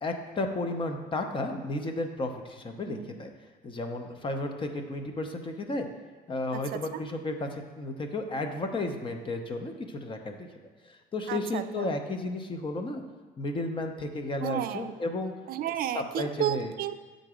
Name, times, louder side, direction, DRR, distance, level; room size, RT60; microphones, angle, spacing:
voice 1, 0.0-3.3 3.6-5.9 6.3-10.5 10.9-13.0 13.4-15.3 15.9-16.7, left 2 dB, 30° left, 5 dB, 0.7 m, -33 dB
voice 2, 11.3-11.9 14.4-14.9 15.5-17.0, right 11 dB, 60° right, 12 dB, 0.4 m, -32 dB
7.6 x 3.9 x 4.9 m, 1.3 s
cardioid pair, 110°, 17 cm